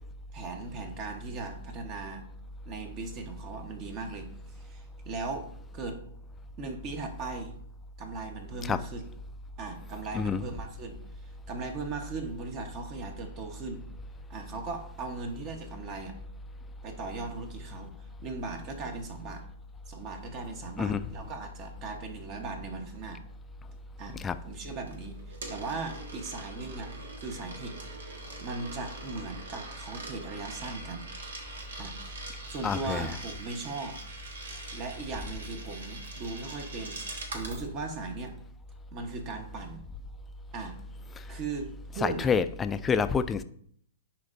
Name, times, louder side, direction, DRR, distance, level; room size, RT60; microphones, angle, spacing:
voice 1, 0.3-2.3 2.6-5.5 5.7-6.0 6.6-7.6 8.0-9.0 9.6-13.8 14.3-16.1 16.8-17.9 18.2-19.4 19.9-23.2 24.0-27.7 28.4-31.1 31.8-34.0 34.7-38.3 38.9-39.8 40.5-40.8 41.3-42.3, right 3 dB, 35° right, 1.0 m, -38 dB
Coin (dropping), 24.9-37.6, right 2 dB, 80° right, 1.4 m, -43 dB
voice 2, 32.6-33.2 41.2-41.4 42.0-43.4, left 6 dB, 15° left, 0.3 m, -28 dB
10.0 x 4.5 x 2.6 m
hypercardioid pair, 130°, 0 cm